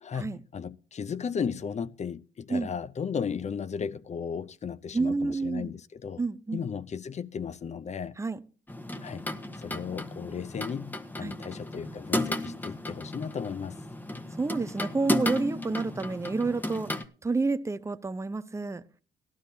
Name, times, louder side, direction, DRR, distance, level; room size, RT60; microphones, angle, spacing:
voice 1, 0.0-6.2 6.5-8.2 9.0-9.3 9.6-13.8, left 6 dB, 35° left, 0.6 m, -35 dB
voice 2, 4.9-5.7 6.2-6.7 8.2-8.4 11.2-11.4 14.4-16.9 17.2-18.8, right 3 dB, 15° right, 0.6 m, -29 dB
sound 1, 8.7-17.0, left 1 dB, 10° left, 0.9 m, -34 dB
17.0 x 12.5 x 2.8 m
cardioid pair, 90°, 20 cm